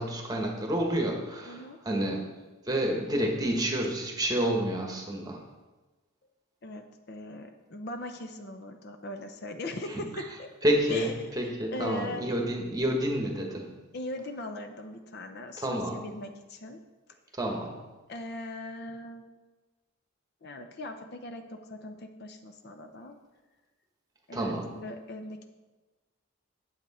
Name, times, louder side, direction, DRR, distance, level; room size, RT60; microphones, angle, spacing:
voice 1, 0.0-2.2 2.7-5.4 10.6-13.7 15.6-16.0 17.4-17.7 24.3-24.7, right 1 dB, 15° right, 1 dB, 1.2 m, -29 dB
voice 2, 1.5-1.8 6.6-10.5 10.9-12.3 13.9-16.8 18.1-19.3 20.4-23.2 24.3-25.5, left 1 dB, 50° left, 6 dB, 0.6 m, -40 dB
8.7 x 8.0 x 4.2 m, 1.2 s
head